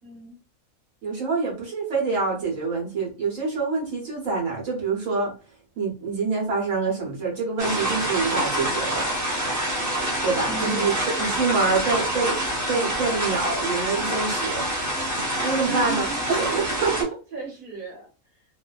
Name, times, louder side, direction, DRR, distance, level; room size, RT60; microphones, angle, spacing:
voice 1, 0.0-0.4 10.4-11.0 15.6-16.6 17.0-18.1, right 2 dB, 40° right, -2 dB, 1.2 m, -36 dB
voice 2, 1.0-5.3 5.8-9.0 10.2-12.3 12.7-14.6 15.4-17.0, right 4 dB, 70° right, -4 dB, 1.2 m, -26 dB
sound 1, 7.6-17.0, right 1 dB, 20° right, 0.5 m, -26 dB
2.6 x 2.2 x 2.3 m, 0.35 s
omnidirectional pair, 1.4 m